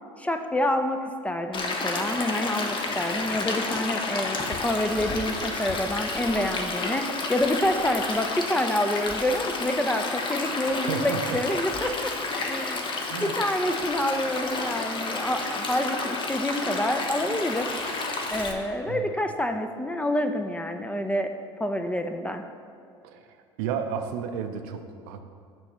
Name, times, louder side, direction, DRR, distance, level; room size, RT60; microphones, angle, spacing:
voice 1, 0.2-12.9 13.2-17.7 18.0-21.3 21.6-22.4, left 1 dB, 10° left, 6 dB, 0.4 m, -28 dB
Stream, 1.5-18.5, left 3 dB, 35° left, 0.8 m, -30 dB
voice 2, 10.9-11.4 13.1-13.4 18.8-19.0 23.0-23.3 23.6-25.2, right 7 dB, 60° right, 7 dB, 0.5 m, -32 dB
7.6 x 3.0 x 5.9 m, 2.3 s
figure-of-eight pair, 65°, 15 cm